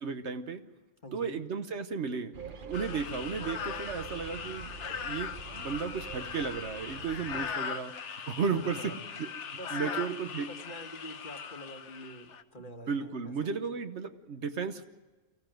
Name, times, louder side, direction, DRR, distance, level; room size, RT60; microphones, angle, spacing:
voice 1, 0.0-0.6 1.1-4.7 5.0-7.9 8.3-10.5 12.6-14.8, right 5 dB, 65° right, 9 dB, 1.2 m, -34 dB
voice 2, 1.0-1.4 8.5-9.0 9.6-13.3, equal, 40° left, 5 dB, 1.8 m, -45 dB
sound 1, 2.3-7.5, right 5 dB, 45° right, 1.1 m, -46 dB
sound 2, 2.7-12.4, left 7 dB, 65° left, 1.2 m, -40 dB
24.5 x 16.0 x 9.1 m, 1.2 s
omnidirectional pair, 1.3 m